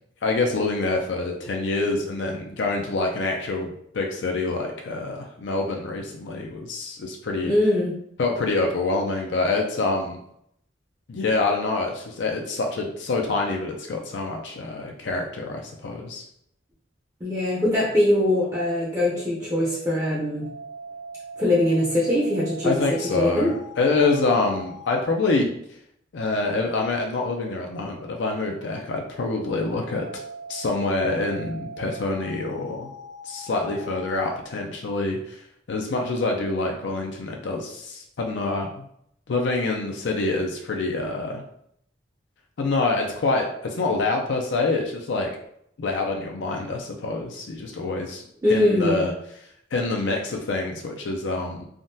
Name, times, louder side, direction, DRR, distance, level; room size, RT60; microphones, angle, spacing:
voice 1, 0.2-7.5 8.2-10.2 11.1-16.2 22.6-25.5 26.1-30.1 30.5-32.9 33.2-35.4 35.7-38.9 39.3-41.4 42.6-45.3 45.8-48.2 48.5-49.1 49.7-51.6, left 3 dB, 70° left, 1 dB, 0.4 m, -26 dB
voice 2, 7.4-8.0 17.2-20.5 21.4-22.8 23.1-23.5 48.4-49.0, left 1 dB, 15° right, -5 dB, 0.5 m, -22 dB
sound 1, 17.7-25.1 27.1-34.4, right 1 dB, 70° right, 1.0 m, -42 dB
3.5 x 2.2 x 2.6 m, 0.71 s
head